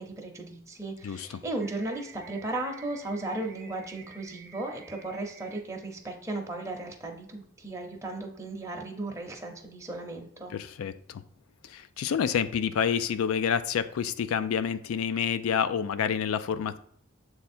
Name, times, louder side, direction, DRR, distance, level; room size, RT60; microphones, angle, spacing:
voice 1, 0.0-10.5, right 2 dB, 15° right, 0 dB, 0.7 m, -36 dB
voice 2, 1.0-1.4 10.5-11.2 11.6-16.8, left 7 dB, 75° left, 12 dB, 0.3 m, -28 dB
sound 1, 1.6-5.6, right 6 dB, 50° right, 0.7 m, -50 dB
7.1 x 3.5 x 4.3 m, 0.68 s
head